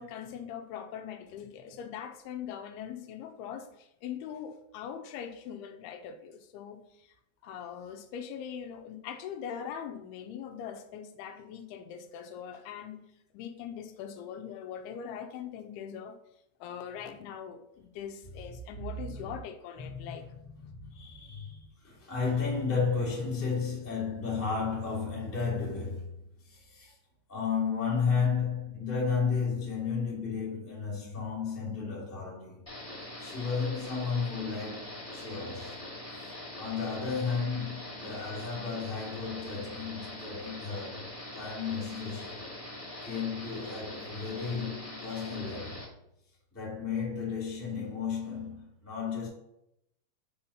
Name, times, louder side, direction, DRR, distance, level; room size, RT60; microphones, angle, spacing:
voice 1, 0.0-7.1 7.4-13.0 13.3-16.2 16.6-20.2, left 8 dB, 90° left, 2.6 m, -41 dB
voice 2, 19.8-26.1 26.4-26.9 27.3-32.6 33.2-35.8 36.2-42.4 43.0-45.8 46.5-49.3, left 5 dB, 10° left, 0.7 m, -33 dB
sound 1, 32.7-45.9, left 1 dB, 50° left, 0.3 m, -43 dB
5.6 x 4.4 x 5.5 m
omnidirectional pair, 4.6 m